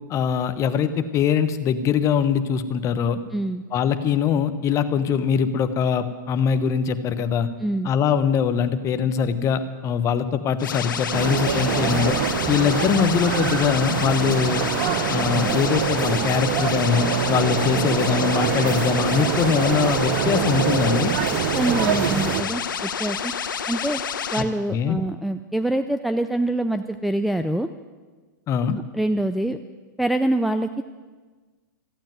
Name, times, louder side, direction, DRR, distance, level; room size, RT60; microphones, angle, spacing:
voice 1, 0.1-3.2 3.7-7.5 7.8-12.2 12.5-14.6 15.1-21.1 24.7-25.0 28.5-28.8, left 7 dB, 30° left, 11 dB, 1.0 m, -22 dB
voice 2, 3.3-3.6 7.6-7.9 21.6-23.3 23.7-24.0 24.3-27.7 28.7-29.6 30.0-30.8, right 1 dB, ahead, 7 dB, 0.4 m, -25 dB
sound 1, 10.6-24.4, left 7 dB, 80° left, 1.0 m, -29 dB
sound 2, 11.1-22.4, right 8 dB, 50° right, 1.0 m, -24 dB
14.5 x 8.8 x 9.5 m, 1.4 s
hypercardioid pair, 125°, 11 cm